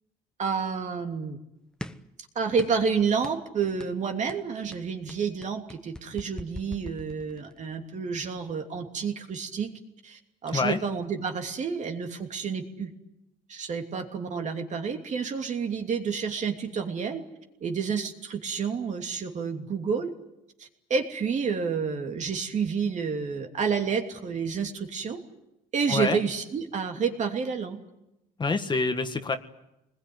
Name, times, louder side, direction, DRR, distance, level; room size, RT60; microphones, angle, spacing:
voice 1, 0.4-1.4 2.3-9.7 10.0-12.9 13.5-17.2 17.6-20.1 20.6-25.2 25.7-27.8, right 6 dB, 45° right, 4 dB, 2.9 m, -29 dB
sound 1, 1.8-2.1 2.6-2.9 3.2-3.4 3.8-4.0 4.3-7.6, left 1 dB, 5° left, 1.1 m, -41 dB
voice 2, 25.9-26.2 28.4-29.4, left 3 dB, 25° left, 7 dB, 1.8 m, -26 dB
24.5 x 20.5 x 9.7 m, 0.88 s
cardioid pair, 110°, 17 cm